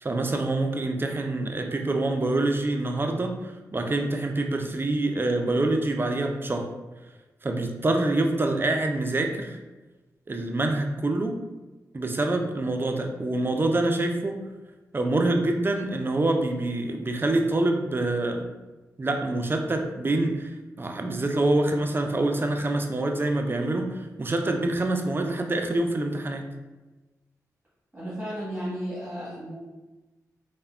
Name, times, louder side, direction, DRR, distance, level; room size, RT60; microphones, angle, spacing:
voice 1, 0.0-6.7 7.4-9.6 10.3-11.4 11.9-14.4 14.9-18.5 19.0-26.5, right 2 dB, 30° right, 4 dB, 0.4 m, -26 dB
voice 2, 27.9-29.5, equal, 15° right, -9 dB, 1.2 m, -33 dB
3.3 x 2.1 x 2.3 m, 1.1 s
supercardioid pair, 40°, 7 cm